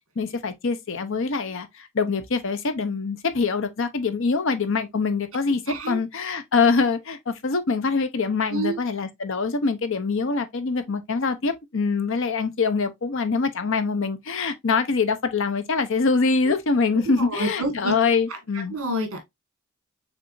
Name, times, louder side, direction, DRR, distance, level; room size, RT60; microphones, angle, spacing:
voice 1, 0.2-5.6 5.9-18.7, left 4 dB, 65° left, 0.7 m, -24 dB
voice 2, 5.7-6.0 8.5-8.8 16.5-16.6 17.0-17.9 18.5-19.2, right 1 dB, 75° right, 1.8 m, -28 dB
5.8 x 3.4 x 2.6 m
head